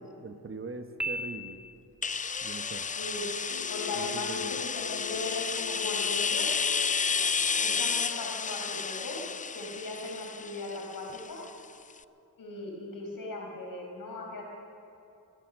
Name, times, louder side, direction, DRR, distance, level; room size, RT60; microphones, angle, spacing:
voice 1, 0.2-1.6 2.4-2.9 3.9-4.5, right 4 dB, 30° right, 7 dB, 1.1 m, -41 dB
Piano, 1.0-2.1, right 1 dB, 5° right, 1.6 m, -36 dB
sound 1, 2.0-11.6, left 6 dB, 20° left, 0.4 m, -31 dB
sound 2, 3.5-7.7, left 9 dB, 75° left, 0.6 m, -40 dB
voice 2, 3.7-6.5 7.6-9.2 9.5-11.4 12.4-14.4, left 2 dB, 55° left, -1 dB, 5.0 m, -38 dB
19.0 x 11.0 x 6.5 m, 2.6 s
supercardioid pair, 50°, 39 cm